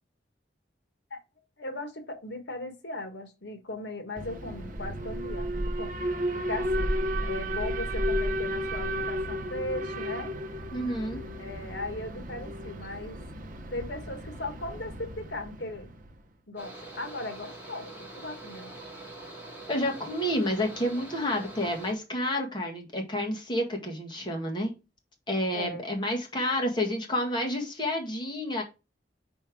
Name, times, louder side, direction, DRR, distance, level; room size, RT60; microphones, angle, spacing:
voice 1, 1.6-6.0 6.4-6.9 7.2-10.3 11.4-13.2 13.7-15.9 16.5-18.7 25.5-25.8, left 2 dB, 75° left, 1.6 m, -38 dB
Alarm, 4.2-16.2, equal, 45° right, 0.8 m, -33 dB
voice 2, 10.7-11.2 19.7-24.7 25.3-28.6, left 1 dB, 25° left, 1.7 m, -29 dB
Mechanical fan, 16.6-21.9, right 2 dB, 10° right, 2.3 m, -44 dB
5.3 x 4.4 x 4.7 m
head